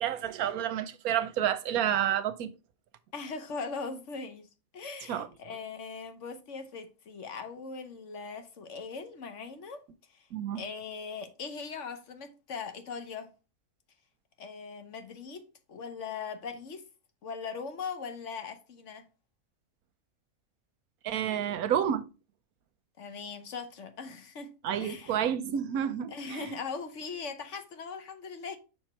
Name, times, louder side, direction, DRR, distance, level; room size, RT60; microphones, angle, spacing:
voice 1, 0.0-2.5 5.1-5.3 10.3-10.6 21.0-22.0 24.6-26.6, right 9 dB, 85° right, 1.2 m, -30 dB
voice 2, 3.1-4.5 4.7-9.8 10.5-13.3 14.4-15.4 15.7-16.8 17.2-19.1 23.0-24.5 24.8-25.2 26.1-28.6, left 5 dB, 60° left, 1.2 m, -40 dB
5.9 x 4.5 x 4.4 m
omnidirectional pair, 1.5 m